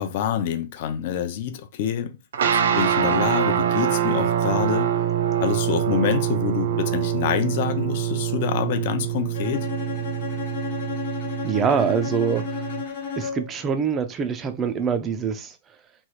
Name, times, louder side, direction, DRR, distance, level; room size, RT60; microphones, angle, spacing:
voice 1, 0.0-2.2 2.5-4.9 5.4-9.7, left 9 dB, 45° left, 0.4 m, -26 dB
sound 1, 2.3-12.8, right 9 dB, 75° right, 0.4 m, -25 dB
Bowed string instrument, 9.3-13.6, left 5 dB, 65° left, 1.1 m, -32 dB
voice 2, 11.4-12.6 13.2-15.6, right 6 dB, 15° right, 0.4 m, -24 dB
3.1 x 2.3 x 2.9 m
supercardioid pair, 170°, 0 cm